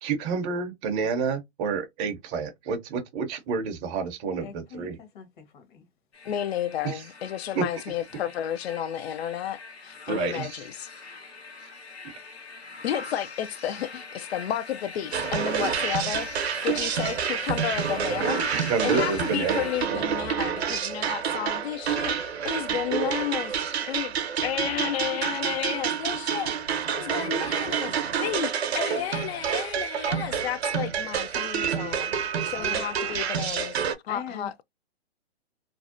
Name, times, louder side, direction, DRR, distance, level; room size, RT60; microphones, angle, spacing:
voice 1, 0.0-5.0 7.6-7.7 10.1-10.5 18.5-19.6 19.9-20.0, right 5 dB, 20° right, 0.4 m, -29 dB
voice 2, 4.4-5.9 31.3-31.4 32.5-33.2 34.1-34.6, left 7 dB, 50° left, 0.9 m, -42 dB
sound 1, 6.1-19.9, left 4 dB, 90° left, 1.1 m, -41 dB
voice 3, 6.2-10.9 12.8-24.2 24.4-34.6, left 10 dB, 70° left, 0.5 m, -32 dB
sound 2, 15.1-33.9, right 8 dB, 75° right, 0.6 m, -28 dB
2.5 x 2.0 x 2.4 m
hypercardioid pair, 135°, 32 cm